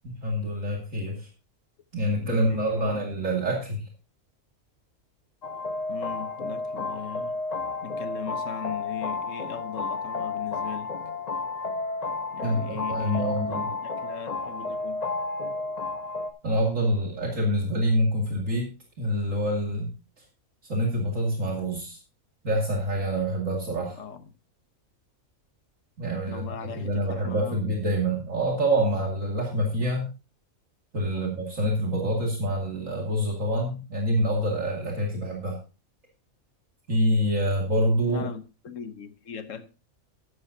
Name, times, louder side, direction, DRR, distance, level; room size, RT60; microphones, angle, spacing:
voice 1, 0.0-1.3 1.9-3.9 12.4-13.7 16.4-18.7 19.0-19.9 20.6-22.0 22.4-24.0 26.0-30.1 30.9-35.6 36.9-38.2, equal, 65° right, 2.7 m, -26 dB
voice 2, 2.1-3.0 5.9-7.4 7.8-10.9 12.3-15.0 24.0-24.3 26.2-27.7 31.1-31.3 38.1-39.7, left 7 dB, 65° left, 1.5 m, -39 dB
sound 1, 5.4-16.3, left 3 dB, 30° left, 1.0 m, -32 dB
13.0 x 11.5 x 2.7 m
omnidirectional pair, 1.5 m